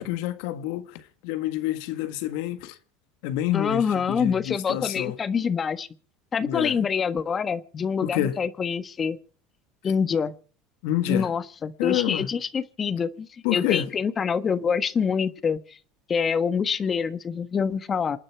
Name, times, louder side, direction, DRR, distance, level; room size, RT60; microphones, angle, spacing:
voice 1, 0.0-2.8 3.2-5.2 6.4-6.8 8.0-8.4 10.8-11.3 11.8-12.3 13.4-13.9, left 13 dB, 75° left, 1.6 m, -28 dB
voice 2, 3.5-5.9 6.3-9.2 9.8-10.3 11.1-15.8 16.1-18.2, left 6 dB, 30° left, 1.4 m, -26 dB
28.5 x 9.7 x 4.7 m
supercardioid pair, 95°, 0 cm